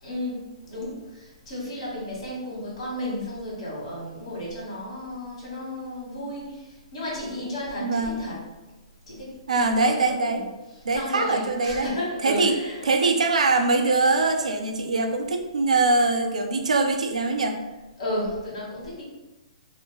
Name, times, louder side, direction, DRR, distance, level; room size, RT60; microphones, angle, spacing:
voice 1, 0.0-8.4 9.1-10.5 10.7-12.9 18.0-19.0, left 1 dB, 65° left, -5 dB, 1.3 m, -33 dB
voice 2, 7.8-8.2 9.5-10.4 10.8-11.9 12.2-12.5 12.9-17.6, right 3 dB, 85° right, 5 dB, 0.3 m, -22 dB
2.4 x 2.3 x 2.2 m, 1.1 s
hypercardioid pair, 135°, 4 cm